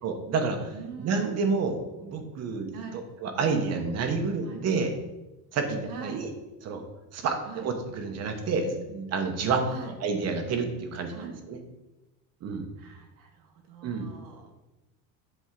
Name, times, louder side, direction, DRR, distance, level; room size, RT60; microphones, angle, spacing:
voice 1, 0.0-0.7 1.0-2.7 3.2-5.0 5.5-6.3 6.6-6.8 7.1-11.6 12.4-12.7 13.8-14.1, right 4 dB, 40° right, 5 dB, 1.0 m, -29 dB
voice 2, 0.7-1.5 2.7-3.1 4.4-4.6 5.9-6.3 7.5-7.7 9.7-9.9 11.1-11.3 12.8-14.5, right 6 dB, 55° right, 3 dB, 1.4 m, -43 dB
7.9 x 3.5 x 5.8 m, 1.0 s
cardioid pair, 155°, 40 cm